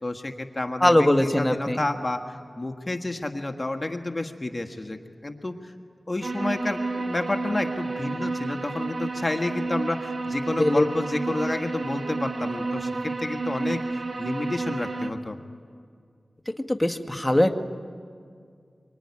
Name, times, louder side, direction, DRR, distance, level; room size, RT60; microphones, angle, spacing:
voice 1, 0.0-5.7 6.1-15.4, left 2 dB, 35° left, 5 dB, 1.7 m, -30 dB
voice 2, 0.8-1.8 10.6-10.8 16.7-17.5, left 1 dB, 10° left, 5 dB, 1.9 m, -20 dB
sound 1, 6.2-15.1, right 3 dB, 70° right, 1.5 m, -31 dB
24.5 x 24.0 x 9.9 m, 2.1 s
cardioid pair, 40°, 0 cm